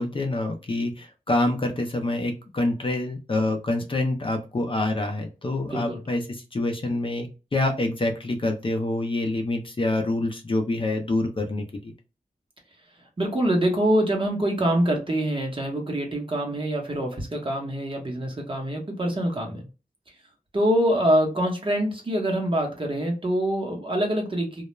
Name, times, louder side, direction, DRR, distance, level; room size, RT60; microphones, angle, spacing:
voice 1, 0.0-11.9, left 2 dB, 35° left, 4 dB, 0.5 m, -26 dB
voice 2, 13.2-19.7 20.5-24.6, right 1 dB, 35° right, 1 dB, 0.9 m, -25 dB
2.3 x 2.1 x 3.0 m, 0.31 s
wide cardioid pair, 100°, 15 cm